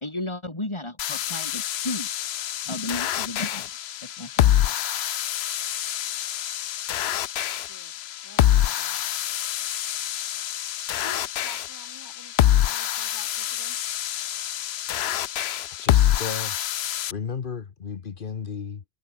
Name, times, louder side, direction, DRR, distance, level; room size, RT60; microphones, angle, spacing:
voice 1, 0.0-2.1 2.7-3.7 4.0-4.6, left 1 dB, 25° left, 3.5 m, -33 dB
sound 1, 1.0-17.1, left 12 dB, 75° left, 0.9 m, -26 dB
voice 2, 7.6-9.0 11.0-13.8, right 1 dB, 20° right, 4.3 m, -49 dB
voice 3, 15.3-16.6 17.1-18.8, left 6 dB, 55° left, 1.1 m, -34 dB
omnidirectional pair, 1.1 m